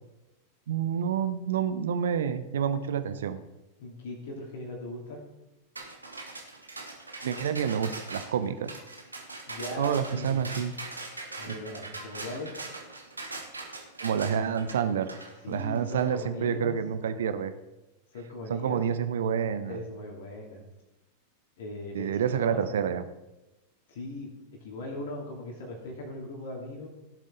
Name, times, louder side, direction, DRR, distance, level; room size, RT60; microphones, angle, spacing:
voice 1, 0.7-3.4 7.2-8.7 9.8-10.7 11.5-11.6 14.0-15.1 15.5-17.5 18.5-19.8 21.9-23.0, right 8 dB, 60° right, 11 dB, 0.8 m, -28 dB
voice 2, 3.8-5.2 9.5-10.4 11.4-12.5 15.4-16.8 18.1-18.8 19.7-20.6 21.6-22.6 23.9-24.3 24.6-26.9, left 2 dB, 55° left, -1 dB, 2.9 m, -39 dB
sound 1, 5.8-16.1, right 3 dB, 80° right, 1.6 m, -41 dB
16.5 x 7.4 x 3.9 m, 1.0 s
figure-of-eight pair, 90°, 0 cm